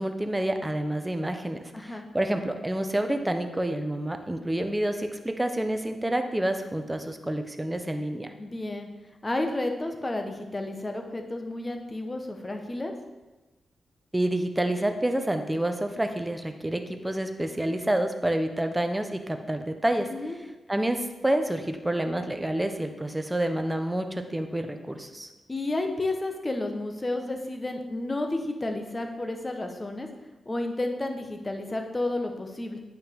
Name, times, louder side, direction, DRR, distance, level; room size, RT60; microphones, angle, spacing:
voice 1, 0.0-8.3 14.1-20.1 20.7-25.3, right 1 dB, 15° right, 6 dB, 0.8 m, -28 dB
voice 2, 1.7-2.0 8.4-8.9 9.2-12.9 20.1-20.4 25.5-30.1 30.5-32.8, left 2 dB, 25° left, 4 dB, 1.0 m, -31 dB
8.9 x 5.6 x 3.6 m, 1.2 s
cardioid pair, 75°, 0 cm